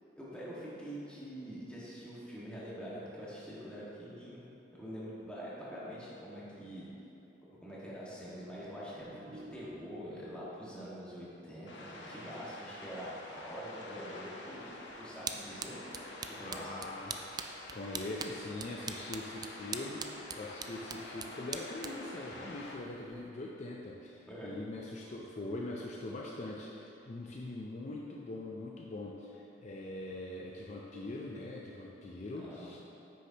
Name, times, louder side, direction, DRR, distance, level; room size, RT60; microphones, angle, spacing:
voice 1, 0.2-4.4 4.8-6.9 7.6-15.8 16.4-16.8 24.3-24.5 32.4-32.7, equal, 5° left, -8 dB, 1.6 m, -45 dB
sound 1, 8.2-10.2, right 1 dB, 85° right, 1.3 m, -52 dB
sound 2, 11.7-22.8, left 2 dB, 75° left, 0.9 m, -48 dB
sound 3, 14.6-23.3, right 5 dB, 20° right, 0.3 m, -45 dB
voice 2, 16.4-17.2 17.7-32.8, left 2 dB, 40° left, -2 dB, 0.5 m, -42 dB
9.5 x 6.4 x 2.9 m, 2.9 s
head